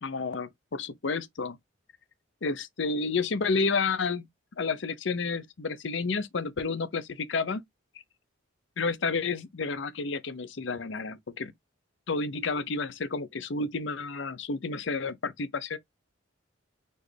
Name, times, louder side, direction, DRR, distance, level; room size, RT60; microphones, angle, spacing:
voice 1, 0.0-1.6 2.4-4.3 4.6-7.6 8.8-11.5 12.1-15.8, left 4 dB, 65° left, 0.6 m, -30 dB
4.4 x 3.3 x 3.2 m
head